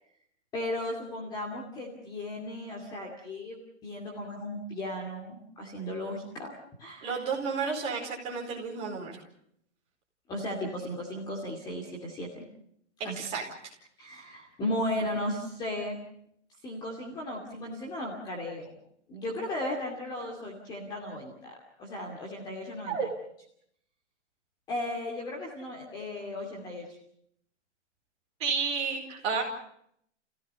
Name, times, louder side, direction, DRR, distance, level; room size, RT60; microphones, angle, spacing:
voice 1, 0.5-6.5 6.8-7.2 10.3-12.5 13.0-13.2 14.0-16.0 16.6-18.7 19.1-21.5 21.8-23.1 24.7-26.9, left 1 dB, 10° left, -1 dB, 2.5 m, -35 dB
voice 2, 7.0-9.1 13.2-13.4 22.8-23.1 28.4-29.4, right 5 dB, 15° right, -1 dB, 4.5 m, -31 dB
29.5 x 17.0 x 6.8 m, 0.70 s
hypercardioid pair, 175°, 35 cm